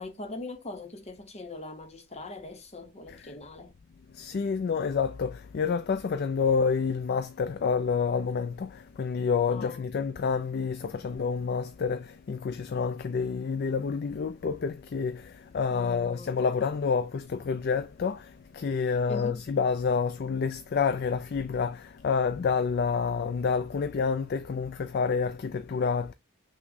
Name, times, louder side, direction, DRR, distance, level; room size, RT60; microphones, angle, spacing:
voice 1, 0.0-3.7 9.5-9.9 15.7-16.3 19.1-19.4, left 2 dB, 30° left, 0.7 m, -41 dB
voice 2, 4.1-26.1, left 5 dB, 45° left, 0.3 m, -28 dB
5.9 x 2.2 x 3.9 m
head